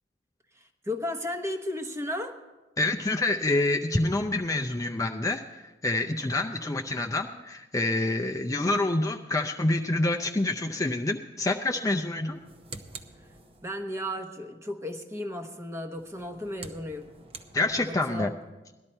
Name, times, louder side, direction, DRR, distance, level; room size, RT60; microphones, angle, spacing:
voice 1, 0.6-2.4 13.6-17.1 18.1-18.3, left 1 dB, 15° right, 4 dB, 1.1 m, -34 dB
voice 2, 2.8-12.4 17.5-18.3, left 2 dB, 20° left, 3 dB, 0.5 m, -27 dB
sound 1, 12.2-13.9 15.9-18.2, right 3 dB, 30° right, 0.8 m, -47 dB
18.0 x 12.5 x 4.4 m, 1.1 s
head